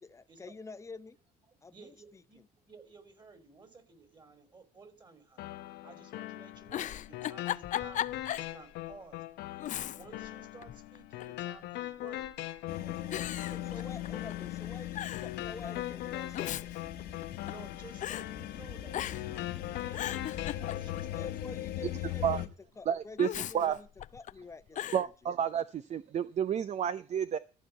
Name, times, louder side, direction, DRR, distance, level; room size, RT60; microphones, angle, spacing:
voice 1, 0.0-1.2 1.6-2.5 13.4-16.7 21.1-22.5 22.8-23.9 24.1-25.1, left 4 dB, 15° left, 0.8 m, -48 dB
voice 2, 1.5-8.0 8.3-9.2 9.6-12.3 12.8-13.3 13.6-14.1 17.4-21.3 21.7-22.3 24.7-25.0, right 4 dB, 25° right, 3.1 m, -55 dB
sound 1, 5.4-21.4, left 14 dB, 85° left, 0.9 m, -41 dB
Giggle, 6.7-8.5 8.9-9.0 9.6-10.3 10.6-11.4 12.2-12.6 13.1-14.3 14.6-14.7 14.9-15.3 16.1-17.7 18.0-18.3 18.9-19.4 19.7-21.1 23.2-24.3 24.7-25.1, left 11 dB, 50° left, 0.5 m, -37 dB
sound 2, 12.7-22.5, left 13 dB, 70° left, 1.3 m, -40 dB
voice 3, 22.9-23.3 23.5-23.8 24.9-27.4, right 9 dB, 40° right, 0.5 m, -30 dB
14.0 x 4.7 x 8.2 m
cardioid pair, 110°, 17 cm